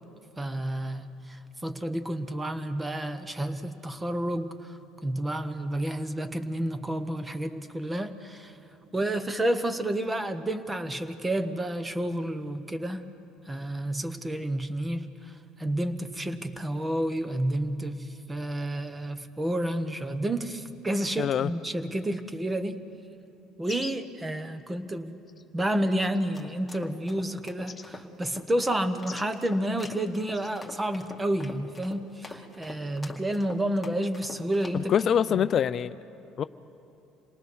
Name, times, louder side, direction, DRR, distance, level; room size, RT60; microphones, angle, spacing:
voice 1, 0.4-8.5 8.9-13.0 13.5-15.3 15.6-22.8 23.6-25.2 25.5-34.9 35.3-35.5, right 1 dB, 15° right, 10 dB, 1.3 m, -30 dB
voice 2, 21.2-21.5 34.7-36.0 36.4-36.5, left 8 dB, 50° left, 13 dB, 0.4 m, -24 dB
sound 1, 23.6-24.1 25.3-25.4 26.0-26.5 27.7-27.9 29.0-29.3 30.3-30.5, left 5 dB, 30° left, 1.4 m, -44 dB
sound 2, 25.7-35.2, left 2 dB, 10° left, 2.2 m, -45 dB
27.5 x 19.0 x 6.3 m, 2.9 s
supercardioid pair, 80°, 0 cm